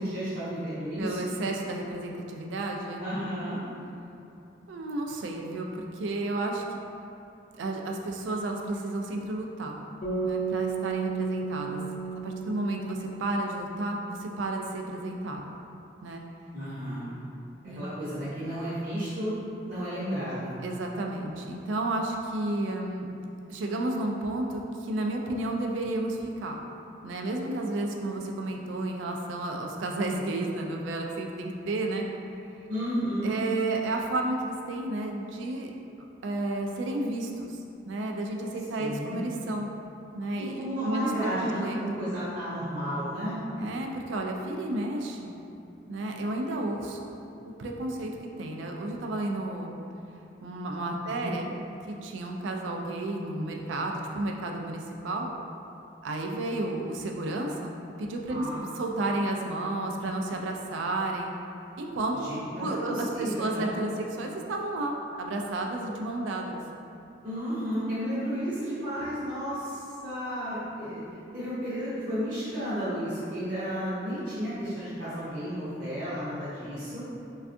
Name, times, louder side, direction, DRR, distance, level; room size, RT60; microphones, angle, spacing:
voice 1, 0.0-1.2 3.0-3.6 16.5-17.0 17.7-19.3 19.6-20.5 32.7-33.3 38.8-39.2 40.4-43.4 51.1-51.3 58.3-58.6 62.1-63.7 67.2-71.0 71.3-77.0, equal, 45° right, -14 dB, 0.7 m, -32 dB
voice 2, 1.0-3.0 4.7-6.6 7.6-9.8 10.2-11.8 12.2-15.5 16.0-16.2 17.6-17.8 20.6-23.1 23.5-26.6 27.0-32.1 33.2-35.7 36.2-37.6 37.9-39.7 40.1-41.8 43.6-45.3 45.9-47.1 47.4-48.1 48.4-49.8 50.4-51.5 51.9-55.3 56.0-57.7 58.0-58.5 58.7-61.3 61.8-62.3 62.6-66.6, right 2 dB, 85° right, 1 dB, 0.3 m, -32 dB
sound 1, 10.0-14.2, right 5 dB, 50° left, 0.5 m, -34 dB
3.4 x 2.3 x 2.5 m, 2.7 s
head